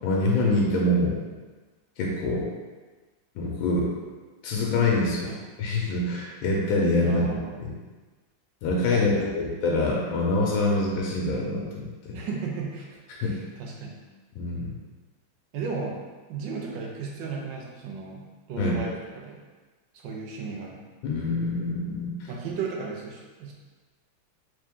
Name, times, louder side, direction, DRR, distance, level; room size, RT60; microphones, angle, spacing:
voice 1, 0.0-1.2 2.0-2.5 3.3-3.9 4.4-5.3 5.6-7.2 7.6-7.7 8.6-12.2 13.2-13.3 14.3-14.7 18.6-18.8 21.0-22.3, left 2 dB, 90° left, -2 dB, 1.5 m, -25 dB
voice 2, 7.0-7.7 8.9-9.5 12.1-14.0 15.5-16.0 16.3-19.4 19.9-20.8 22.3-23.5, right 4 dB, 75° right, -1 dB, 1.3 m, -35 dB
3.7 x 3.2 x 3.5 m, 1.3 s
omnidirectional pair, 2.1 m